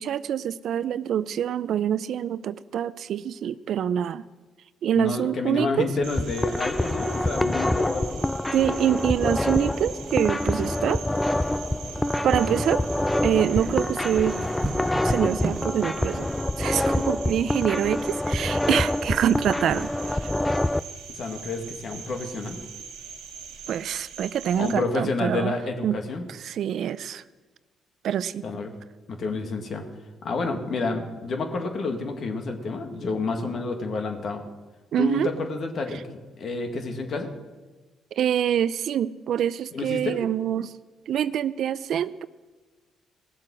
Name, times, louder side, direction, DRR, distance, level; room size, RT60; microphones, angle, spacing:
voice 1, 0.0-4.2 4.8-5.9 8.5-11.0 12.2-12.8 13.2-14.4 15.0-16.3 16.6-20.3 23.7-25.5 25.8-26.0 26.3-27.2 28.0-28.5 34.9-35.3 38.1-40.8 41.1-42.3, right 9 dB, 70° right, 16 dB, 0.4 m, -25 dB
voice 2, 5.0-8.2 21.1-22.6 24.6-26.2 28.4-28.7 29.1-29.8 30.2-34.4 35.0-37.3 39.7-40.2, left 3 dB, 60° left, 4 dB, 1.8 m, -29 dB
sound 1, 6.0-20.8, left 1 dB, 10° left, 0.4 m, -26 dB
Cricket, 6.0-24.7, right 6 dB, 85° right, 1.5 m, -42 dB
sound 2, 11.8-15.9, right 3 dB, 30° right, 0.9 m, -36 dB
17.5 x 7.5 x 6.2 m, 1.3 s
supercardioid pair, 65°, 0 cm